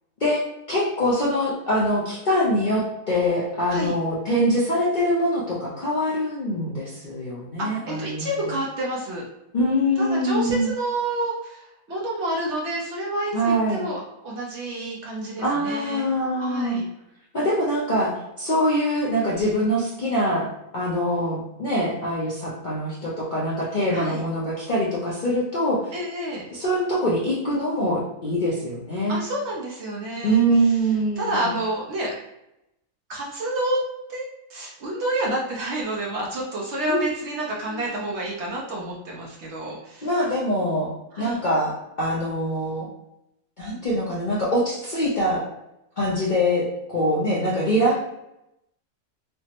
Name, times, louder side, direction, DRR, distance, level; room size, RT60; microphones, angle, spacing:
voice 1, 0.7-8.3 9.5-10.7 13.3-13.8 15.4-16.8 17.3-20.5 20.7-25.9 26.5-29.2 30.2-31.5 36.9-37.0 37.7-37.9 40.0-40.9 41.2-42.9 43.6-45.4 46.0-46.6 46.9-48.0, equal, 50° left, -7 dB, 0.5 m, -24 dB
voice 2, 7.6-9.3 10.0-16.0 16.4-16.8 23.9-24.2 25.9-26.4 29.1-30.8 31.2-32.1 33.1-33.8 34.1-34.2 34.5-40.1 41.1-41.4, right 1 dB, 60° right, -3 dB, 0.8 m, -29 dB
3.3 x 2.0 x 2.8 m, 0.86 s
omnidirectional pair, 1.5 m